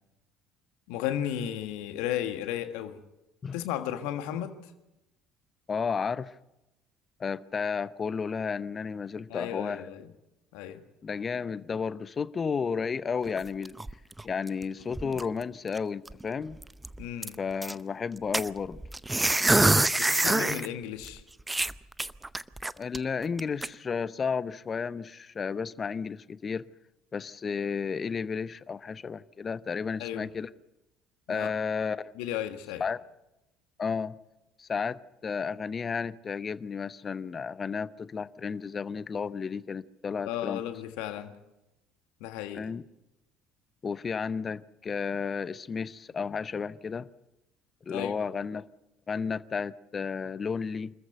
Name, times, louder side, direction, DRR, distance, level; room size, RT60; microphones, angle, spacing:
voice 1, 0.9-3.0 3.5-4.7 9.3-10.1 10.5-10.8 17.0-17.4 20.0-21.2 30.0-30.3 31.3-31.5 32.1-32.8 40.2-41.3 42.2-42.6 47.9-48.2, left 11 dB, 65° left, 1.6 m, -34 dB
voice 2, 5.7-6.4 7.2-9.9 11.0-13.7 14.2-16.6 17.4-18.8 22.8-26.6 27.1-30.5 31.3-32.1 32.8-33.0 33.8-34.2 34.6-40.6 42.5-42.8 43.8-47.1 47.9-48.6 49.1-50.9, left 5 dB, 35° left, 0.8 m, -32 dB
sound 1, 13.2-14.6 14.9-15.4 15.8-15.9 16.1-16.2 16.6-17.7 18.3-20.7 21.0-21.1 21.5-23.0 23.4-23.7, right 2 dB, 10° right, 0.7 m, -26 dB
25.5 x 14.5 x 7.9 m
figure-of-eight pair, 60°, 0 cm